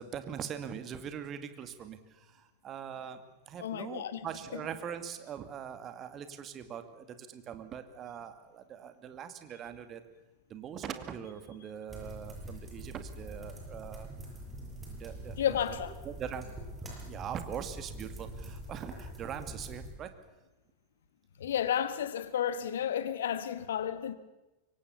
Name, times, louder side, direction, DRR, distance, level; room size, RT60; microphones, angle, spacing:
voice 1, 0.0-10.0 10.5-14.1 14.9-15.6 16.0-20.1, right 8 dB, 30° right, 2.2 m, -42 dB
voice 2, 3.6-4.2 15.4-16.0 21.4-24.1, left 9 dB, 60° left, 1.5 m, -32 dB
sound 1, 11.9-19.9, right 1 dB, 15° right, 7.8 m, -44 dB
25.5 x 23.5 x 7.1 m
figure-of-eight pair, 90°, 0 cm